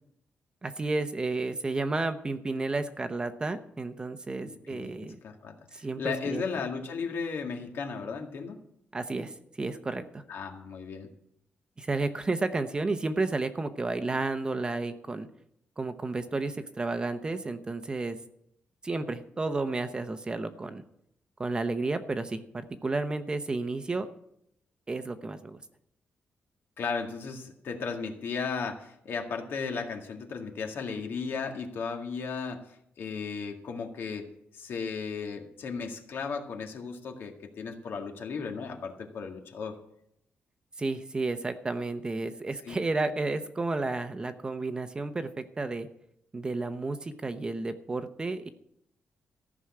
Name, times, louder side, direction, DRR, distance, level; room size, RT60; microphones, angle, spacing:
voice 1, 0.6-5.2 5.7-6.4 8.9-10.2 11.8-15.3 15.8-18.2 18.8-20.8 21.4-24.1 24.9-25.6 40.8-45.9 46.3-48.5, right 3 dB, 20° right, 9 dB, 0.8 m, -32 dB
voice 2, 4.5-8.6 10.3-11.1 26.8-32.6 33.0-34.3 34.5-39.8 42.6-42.8, left 5 dB, 65° left, 3 dB, 2.0 m, -35 dB
14.5 x 6.2 x 8.7 m, 0.74 s
wide cardioid pair, 145°, 4 cm